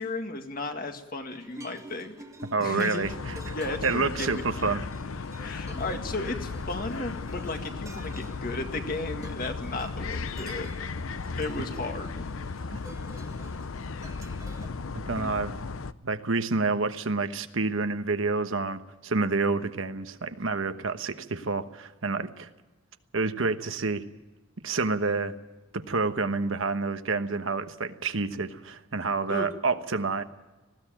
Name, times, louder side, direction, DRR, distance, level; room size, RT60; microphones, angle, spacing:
voice 1, 0.0-2.2 2.6-3.0 3.5-4.8 5.4-10.7 11.4-12.2 15.2-15.3 29.3-29.5, left 2 dB, 45° left, 5 dB, 1.9 m, -34 dB
sound 1, 1.3-14.7, right 1 dB, 15° right, 2.1 m, -49 dB
voice 2, 2.5-3.1 3.5-3.6 3.8-4.8 12.7-12.8 14.9-15.5 16.0-22.5 23.1-24.0 24.6-25.3 25.7-30.2, right 3 dB, 70° right, 9 dB, 1.2 m, -28 dB
sound 2, 3.0-15.9, left 4 dB, 80° left, 0.7 m, -36 dB
20.0 x 16.5 x 8.8 m, 1.1 s
head